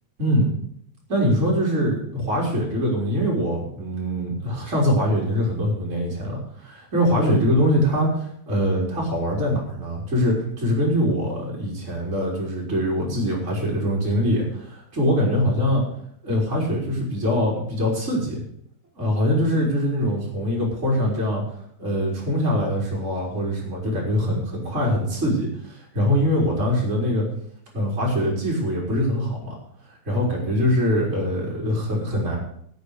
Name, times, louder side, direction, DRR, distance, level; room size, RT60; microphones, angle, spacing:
voice 1, 0.2-0.5 1.1-15.8 16.2-18.4 19.0-21.4 21.8-27.3 27.7-29.6 29.9-32.4, equal, 20° right, -4 dB, 4.3 m, -23 dB
17.0 x 6.9 x 6.5 m, 0.69 s
omnidirectional pair, 3.7 m